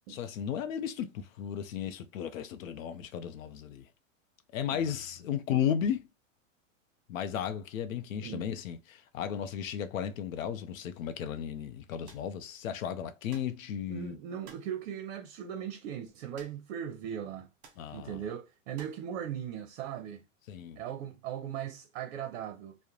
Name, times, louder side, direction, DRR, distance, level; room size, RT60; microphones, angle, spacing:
voice 1, 0.1-3.9 4.5-6.1 7.1-14.2 17.8-18.2 20.5-20.8, left 9 dB, 85° left, 0.5 m, -34 dB
sound 1, 12.1-12.3 13.3-13.6 14.4-14.7 16.3-16.8 17.0-17.1 17.6-17.9 18.8-19.1, right 5 dB, 35° right, 1.0 m, -54 dB
voice 2, 13.9-17.5 17.9-20.2 20.8-22.8, right 9 dB, 60° right, 0.6 m, -39 dB
2.3 x 2.1 x 2.9 m
hypercardioid pair, 130°, 39 cm